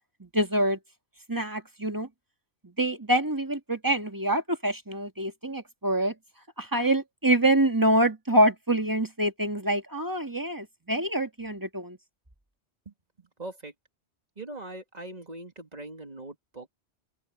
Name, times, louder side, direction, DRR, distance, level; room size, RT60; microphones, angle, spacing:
voice 1, 0.2-0.8 1.3-2.1 2.6-6.1 6.6-12.0, right 1 dB, 15° right, 1.8 m, -26 dB
voice 2, 12.9-13.7 14.4-16.7, right 2 dB, 35° right, 2.5 m, -42 dB
open air
omnidirectional pair, 1.2 m